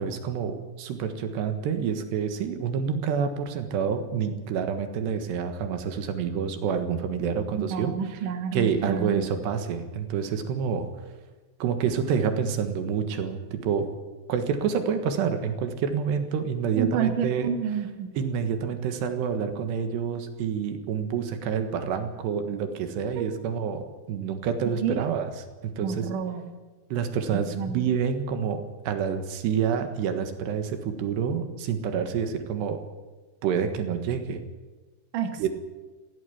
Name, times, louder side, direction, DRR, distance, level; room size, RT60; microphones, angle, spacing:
voice 1, 0.0-7.9 8.5-10.9 11.6-13.9 14.3-17.5 18.2-26.1 26.9-32.8 33.4-34.4 35.4-35.5, right 7 dB, 85° right, 7 dB, 3.7 m, -28 dB
voice 2, 7.5-9.3 16.7-18.1 23.2-23.4 24.8-25.0 25.8-26.4 27.3-27.8 35.1-35.5, right 7 dB, 60° right, 6 dB, 2.9 m, -30 dB
17.0 x 16.0 x 9.6 m, 1.3 s
omnidirectional pair, 4.9 m